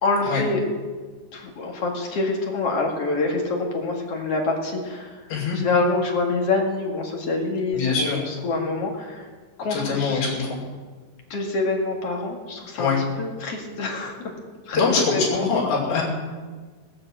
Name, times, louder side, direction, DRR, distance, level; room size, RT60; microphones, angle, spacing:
voice 1, 0.0-0.6 1.3-5.2 5.5-9.3 9.6-10.2 11.3-12.9 13.2-14.3 14.7-15.5, left 3 dB, 45° left, 0 dB, 2.3 m, -26 dB
voice 2, 7.7-8.2 9.7-10.6 12.8-13.0 14.7-16.0, left 5 dB, 75° left, -4 dB, 4.7 m, -23 dB
19.0 x 7.6 x 7.7 m, 1.4 s
omnidirectional pair, 4.8 m